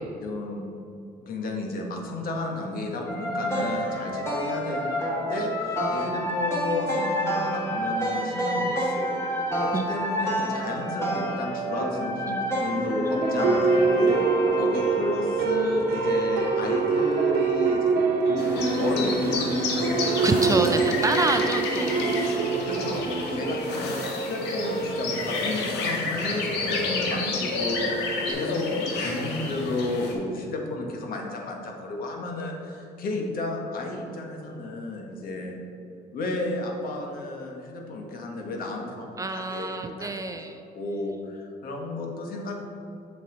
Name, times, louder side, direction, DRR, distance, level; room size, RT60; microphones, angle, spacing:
voice 1, 0.2-0.6 1.2-14.1 14.5-18.0 18.8-20.5 21.1-21.9 22.6-23.0 23.3-35.5 36.1-40.1 40.3-40.5 40.7-42.6, left 2 dB, 60° left, 1 dB, 1.3 m, -32 dB
sound 1, 3.1-15.4, equal, 15° left, 1.7 m, -28 dB
sound 2, 12.7-28.3, right 4 dB, 75° right, 1.2 m, -26 dB
sound 3, 18.4-30.1, left 3 dB, 85° left, 1.2 m, -31 dB
voice 2, 20.2-22.4 39.2-40.6, right 3 dB, 20° right, 6 dB, 0.4 m, -27 dB
7.3 x 5.7 x 3.9 m, 2.7 s
cardioid pair, 110°, 17 cm